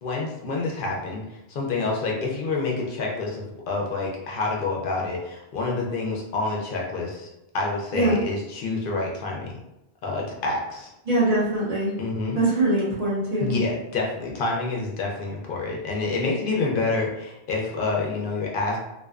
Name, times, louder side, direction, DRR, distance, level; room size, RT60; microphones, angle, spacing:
voice 1, 0.0-7.3 7.5-9.5 10.0-10.9 12.0-12.4 13.4-18.8, left 3 dB, 60° left, -1 dB, 0.7 m, -28 dB
voice 2, 11.0-11.9 12.3-13.6, right 2 dB, 40° right, -7 dB, 0.8 m, -22 dB
2.4 x 2.2 x 2.3 m, 0.90 s
omnidirectional pair, 1.0 m